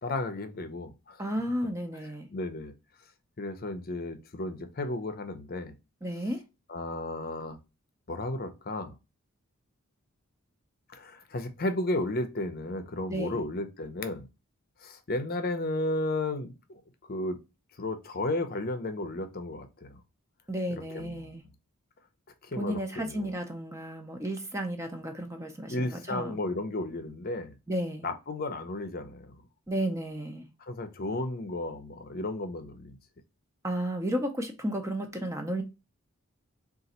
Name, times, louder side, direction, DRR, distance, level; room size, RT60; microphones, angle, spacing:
voice 1, 0.0-1.2 2.0-2.7 3.4-5.7 6.7-7.6 8.1-8.9 10.9-14.3 14.8-16.8 17.1-17.4 17.8-20.0 20.7-21.3 22.4-23.3 25.7-27.5 28.0-29.4 30.7-33.0, left 2 dB, 45° left, 0.7 m, -33 dB
voice 2, 1.2-2.3 6.0-6.4 13.1-13.4 20.5-21.4 22.6-26.4 27.7-28.1 29.7-30.4 33.6-35.6, right 1 dB, 15° right, 0.6 m, -33 dB
3.8 x 2.5 x 4.1 m
head